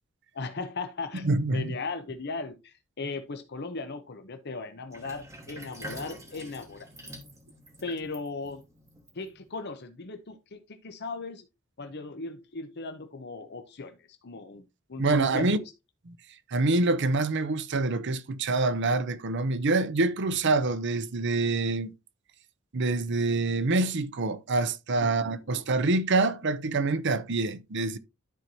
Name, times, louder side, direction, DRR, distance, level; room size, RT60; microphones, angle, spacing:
voice 1, 0.3-6.9 7.8-8.6 9.1-11.5 11.8-14.6 14.9-15.7 25.0-25.4, left 3 dB, 55° left, 0.8 m, -37 dB
voice 2, 1.2-1.7 15.0-15.6 16.5-21.9 22.7-28.0, right 3 dB, 60° right, 0.7 m, -26 dB
Sink (filling or washing), 4.9-9.7, equal, 15° right, 2.7 m, -46 dB
13.0 x 4.5 x 2.7 m
head